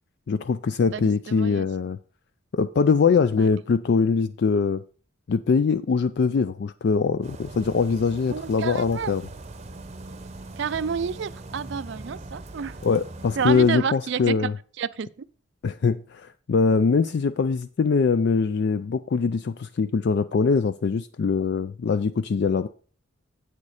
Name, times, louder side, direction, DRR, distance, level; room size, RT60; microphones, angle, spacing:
voice 1, 0.3-2.0 2.5-4.8 5.3-9.3 12.8-14.6 15.6-22.7, left 5 dB, 55° left, 0.3 m, -22 dB
voice 2, 0.9-1.7 3.4-3.5 8.3-9.1 10.6-12.8 13.4-14.5 14.8-15.1, right 6 dB, 60° right, 0.4 m, -29 dB
sound 1, 7.2-13.7, right 2 dB, 30° right, 0.7 m, -41 dB
8.5 x 6.7 x 4.9 m
head